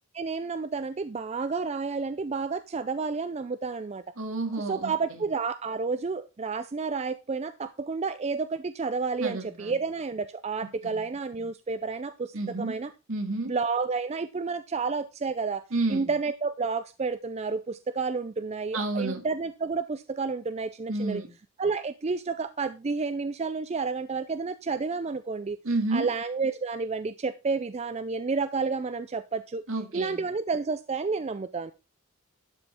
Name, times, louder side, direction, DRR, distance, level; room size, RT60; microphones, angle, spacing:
voice 1, 0.1-4.0 4.5-12.9 13.5-21.2 21.6-25.6 25.9-29.6 29.9-31.7, right 4 dB, 30° right, 12 dB, 0.4 m, -30 dB
voice 2, 4.2-5.2 9.2-9.7 10.8-11.0 12.3-12.8 13.1-13.5 15.7-16.1 18.7-19.3 20.9-21.3 25.6-26.1 29.7-30.2, right 2 dB, 70° right, 5 dB, 2.2 m, -30 dB
11.5 x 5.6 x 4.3 m, 0.28 s
head